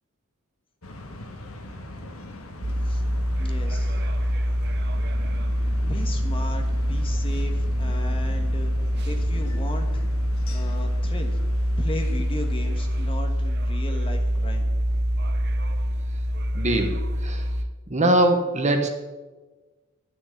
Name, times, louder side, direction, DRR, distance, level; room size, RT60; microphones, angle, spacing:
sound 1, 0.8-13.1, left 1 dB, 65° left, 1.5 m, -41 dB
sound 2, 2.6-17.7, equal, 50° right, 0.7 m, -25 dB
voice 1, 3.4-4.0 5.8-8.7 9.0-10.0 10.5-11.4 11.8-14.7, left 1 dB, 25° left, 4 dB, 1.4 m, -36 dB
voice 2, 16.5-17.5 17.9-18.9, right 1 dB, 30° right, 4 dB, 1.2 m, -22 dB
12.5 x 6.5 x 8.1 m, 1.3 s
head